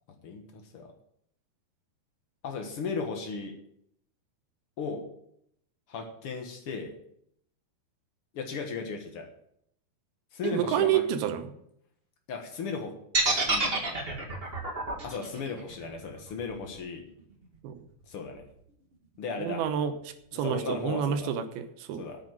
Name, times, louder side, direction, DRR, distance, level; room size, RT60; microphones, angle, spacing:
voice 1, 0.2-0.9 2.4-3.6 4.8-5.1 5.9-6.9 8.3-9.3 10.3-11.0 12.3-13.7 15.0-17.0 18.1-18.4 19.2-19.6 20.3-21.3 22.0-22.2, left 5 dB, 85° left, 4 dB, 1.2 m, -36 dB
voice 2, 10.4-11.5 17.6-17.8 19.4-22.1, right 9 dB, 75° right, 9 dB, 2.8 m, -29 dB
sound 1, 13.1-17.2, right 2 dB, 45° right, 0.7 m, -29 dB
9.3 x 8.1 x 8.9 m, 0.71 s
omnidirectional pair, 4.7 m